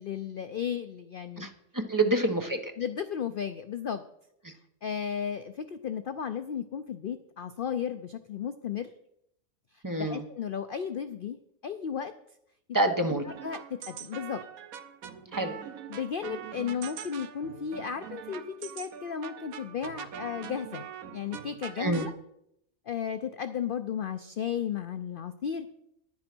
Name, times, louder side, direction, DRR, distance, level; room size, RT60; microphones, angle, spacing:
voice 1, 0.0-1.5 2.0-2.1 2.8-4.0 4.8-8.9 9.7-11.4 11.6-12.1 13.4-13.6 13.9-14.4 15.9-20.9 21.1-22.1 22.9-25.7, left 8 dB, 55° left, 10 dB, 0.6 m, -34 dB
voice 2, 1.4-2.7 4.4-4.5 9.8-10.2 12.7-13.2 15.3-15.5 21.8-22.1, right 2 dB, 15° right, 5 dB, 1.0 m, -27 dB
sound 1, 13.3-22.1, right 8 dB, 85° right, 1.3 m, -43 dB
11.0 x 9.8 x 6.1 m, 0.78 s
omnidirectional pair, 1.5 m